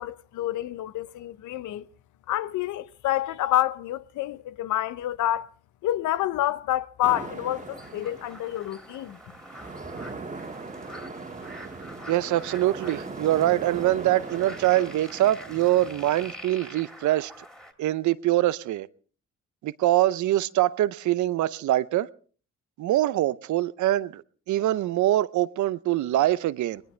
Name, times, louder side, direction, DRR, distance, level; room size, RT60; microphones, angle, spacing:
voice 1, 0.0-1.9 2.3-5.5 5.8-9.2, left 13 dB, 80° left, 0.8 m, -28 dB
sound 1, 7.0-16.4, right 3 dB, 25° right, 2.0 m, -40 dB
sound 2, 7.5-17.7, equal, ahead, 3.0 m, -46 dB
voice 2, 12.1-17.3 17.8-18.9 19.6-22.1 22.8-26.8, right 14 dB, 75° right, 0.7 m, -24 dB
20.5 x 20.0 x 3.3 m
cardioid pair, 90°, 30 cm